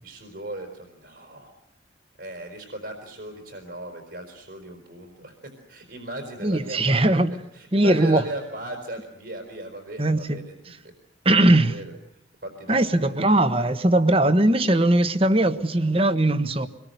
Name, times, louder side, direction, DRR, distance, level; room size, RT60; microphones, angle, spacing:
voice 1, 0.0-1.5 2.2-7.2 7.5-10.4 10.8-10.9 11.5-13.2, right 1 dB, 65° right, 4.7 m, -37 dB
voice 2, 6.4-7.3 7.7-8.2 10.0-10.4 11.2-11.8 12.7-16.7, right 1 dB, 30° right, 1.2 m, -20 dB
24.5 x 22.0 x 8.0 m
head